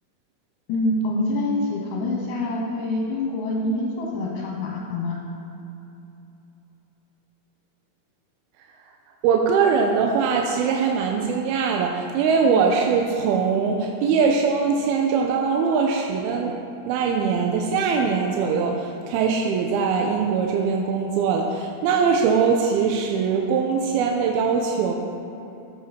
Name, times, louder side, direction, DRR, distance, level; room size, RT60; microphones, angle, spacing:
voice 1, 0.7-5.2 12.5-12.6, left 2 dB, 65° left, -2 dB, 2.4 m, -26 dB
voice 2, 9.2-16.5 16.9-24.9, right 5 dB, 90° right, 1 dB, 2.6 m, -22 dB
14.0 x 8.0 x 4.3 m, 3.0 s
omnidirectional pair, 4.4 m